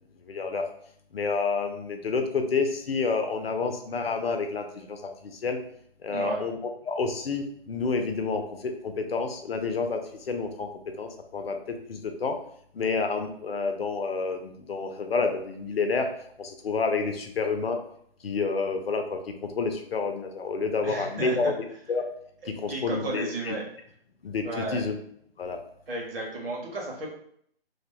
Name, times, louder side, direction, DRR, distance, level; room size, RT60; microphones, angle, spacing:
voice 1, 0.3-0.6 1.1-5.6 6.0-6.6 6.8-10.7 11.0-12.4 12.7-16.1 16.4-17.8 18.2-21.5 21.9-22.0 22.5-23.5 24.2-25.0 25.4-25.6, left 4 dB, 70° left, 5 dB, 0.6 m, -29 dB
voice 2, 6.1-6.4 20.8-21.5 22.4-23.6 24.4-24.8 25.9-27.1, right 2 dB, 65° right, -2 dB, 1.3 m, -33 dB
2.8 x 2.2 x 4.0 m, 0.66 s
figure-of-eight pair, 140°, 31 cm